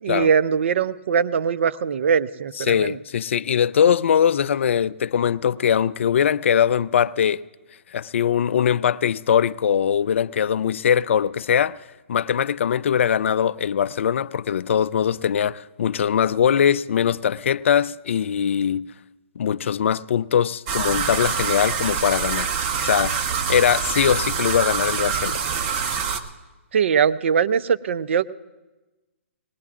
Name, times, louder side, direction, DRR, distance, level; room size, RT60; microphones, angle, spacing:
voice 1, 0.0-3.0 26.7-28.3, right 7 dB, 60° right, 0.5 m, -21 dB
voice 2, 2.6-7.4 7.9-11.8 12.1-18.9 19.4-22.5 22.8-23.2 23.5-25.5, left 8 dB, 65° left, 0.4 m, -21 dB
sound 1, 20.7-26.2, right 6 dB, 30° right, 1.0 m, -25 dB
20.5 x 19.0 x 2.5 m
hypercardioid pair, 145°, 7 cm